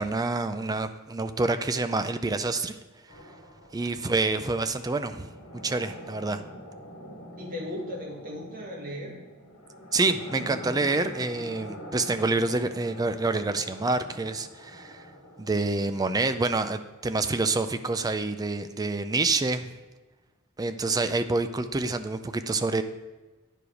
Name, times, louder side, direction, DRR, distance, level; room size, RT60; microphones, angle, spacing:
voice 1, 0.0-2.8 3.7-6.4 9.9-15.0 15.4-19.8 20.6-22.8, right 3 dB, 15° right, 10 dB, 0.4 m, -27 dB
sound 1, 3.1-16.9, equal, 90° left, 1.5 m, -45 dB
voice 2, 7.4-9.2, left 1 dB, 40° right, -1 dB, 1.7 m, -37 dB
9.9 x 4.8 x 5.1 m, 1.2 s
head